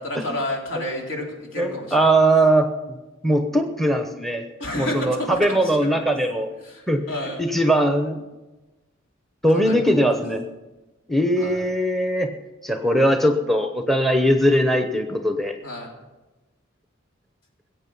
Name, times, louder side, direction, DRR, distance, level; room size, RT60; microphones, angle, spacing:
voice 1, 0.0-2.1 4.6-5.9 6.6-7.4 9.5-9.8 11.4-11.6 15.6-15.9, left 1 dB, 70° left, -1 dB, 3.5 m, -30 dB
voice 2, 1.6-2.7 3.2-4.4 4.8-6.5 6.9-7.0 7.4-8.2 9.4-10.4 11.1-12.3 12.6-15.6, right 1 dB, ahead, 6 dB, 0.9 m, -20 dB
20.5 x 8.4 x 5.5 m, 1.1 s
head